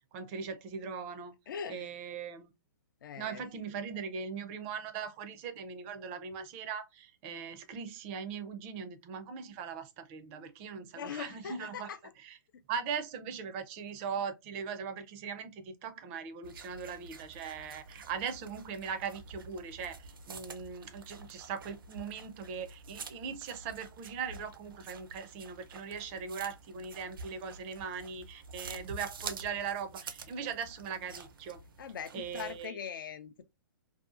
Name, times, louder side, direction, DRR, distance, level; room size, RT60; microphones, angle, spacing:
voice 1, 0.1-1.3 1.7-2.5 3.2-11.9 12.3-12.4 12.7-31.6 32.1-32.8, right 6 dB, 35° right, 0.4 m, -40 dB
voice 2, 1.5-1.9 3.0-3.4 3.7-3.8 11.0-12.0 12.5-12.6 31.8-33.4, left 7 dB, 75° left, 0.5 m, -41 dB
sound 1, 16.4-32.7, right 4 dB, 85° right, 0.5 m, -48 dB
2.7 x 2.3 x 2.4 m
hypercardioid pair, 140°, 11 cm